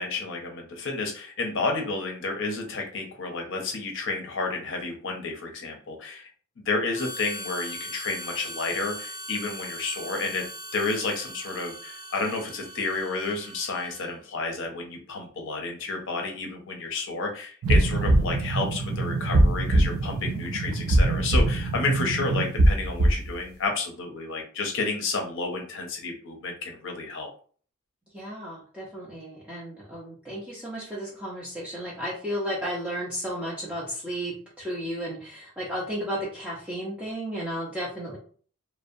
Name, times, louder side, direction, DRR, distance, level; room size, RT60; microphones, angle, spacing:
voice 1, 0.0-6.3 6.6-10.5 10.7-27.3, left 3 dB, 60° left, 3 dB, 0.6 m, -31 dB
Harmonica, 6.9-14.2, right 1 dB, 25° left, 0.8 m, -40 dB
sound 1, 17.6-23.3, right 1 dB, 70° right, 0.4 m, -22 dB
voice 2, 28.1-38.2, equal, 5° right, -7 dB, 0.5 m, -33 dB
2.6 x 2.0 x 2.5 m, 0.44 s
head